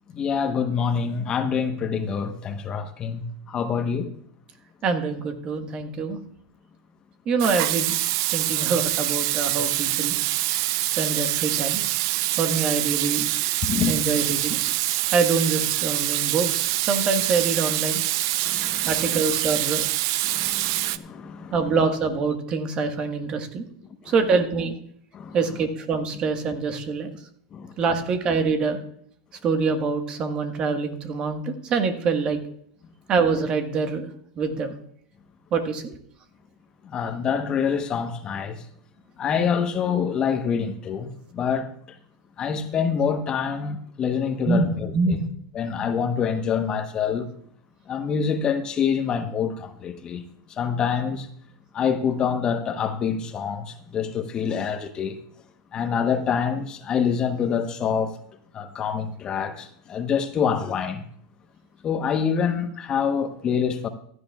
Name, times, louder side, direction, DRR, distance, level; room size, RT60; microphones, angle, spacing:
voice 1, 0.1-4.1 13.6-14.0 18.4-18.9 20.2-21.5 24.0-24.1 25.1-25.4 27.5-27.7 36.8-38.6 39.2-41.7 42.4-45.2 45.5-47.3 47.9-50.2 50.6-51.3 51.7-55.2 55.7-58.2 58.5-61.0 61.8-63.9, left 7 dB, 35° left, 1.1 m, -26 dB
voice 2, 4.8-6.2 7.2-8.0 8.3-10.2 11.0-11.8 12.4-13.2 13.9-14.6 15.1-18.0 18.8-19.8 21.5-23.7 24.0-24.7 25.3-27.1 27.8-28.8 29.4-32.4 33.1-34.1 34.4-34.7 35.5-36.0 44.4-45.2, right 4 dB, 40° right, 1.5 m, -25 dB
Water tap faucet / Sink (filling or washing), 7.4-21.0, right 16 dB, 65° right, 0.5 m, -25 dB
15.5 x 11.5 x 2.4 m
hypercardioid pair, 100°, 3 cm